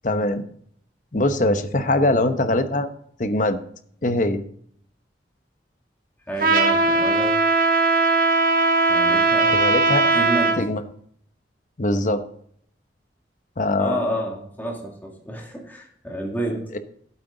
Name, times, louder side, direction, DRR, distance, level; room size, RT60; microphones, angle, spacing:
voice 1, 0.0-0.4 1.1-2.9 3.2-3.6 4.0-4.4 9.5-10.1 10.6-10.8 11.8-12.2 13.6-14.1, left 1 dB, 45° left, 9 dB, 0.9 m, -22 dB
voice 2, 6.3-7.4 8.9-9.6 10.1-10.6 13.8-16.7, right 1 dB, 10° left, -1 dB, 2.3 m, -29 dB
Trumpet, 6.4-10.6, right 3 dB, 50° right, 1.5 m, -19 dB
12.0 x 8.8 x 3.8 m, 0.64 s
head